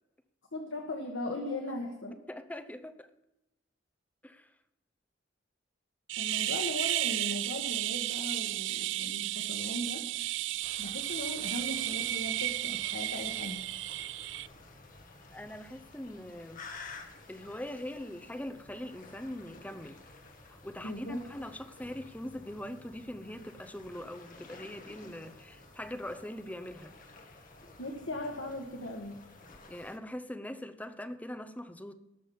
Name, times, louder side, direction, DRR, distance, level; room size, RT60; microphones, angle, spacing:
voice 1, 0.5-2.2 6.2-10.1 10.8-13.7 20.8-21.2 27.8-29.2, left 1 dB, 75° left, 1.5 m, -38 dB
voice 2, 2.3-3.1 4.2-4.5 15.3-16.6 17.3-20.0 20.5-26.9 29.7-31.9, left 1 dB, 10° left, 0.8 m, -42 dB
sound 1, 6.1-14.5, right 15 dB, 70° right, 0.3 m, -33 dB
sound 2, 10.6-30.0, left 3 dB, 45° left, 1.7 m, -52 dB
18.5 x 6.3 x 5.4 m
head